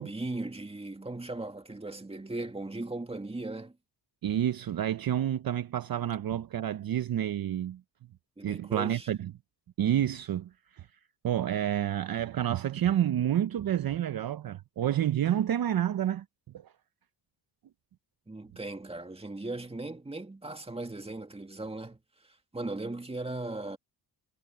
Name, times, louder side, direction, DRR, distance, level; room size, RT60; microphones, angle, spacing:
voice 1, 0.0-3.8 8.4-9.1 18.3-23.8, right 2 dB, 15° right, 2.0 m, -38 dB
voice 2, 4.2-7.8 8.4-9.3 9.8-10.9 11.2-16.2 16.6-16.7, right 11 dB, 55° right, 0.7 m, -29 dB
cardioid pair, 120°, 44 cm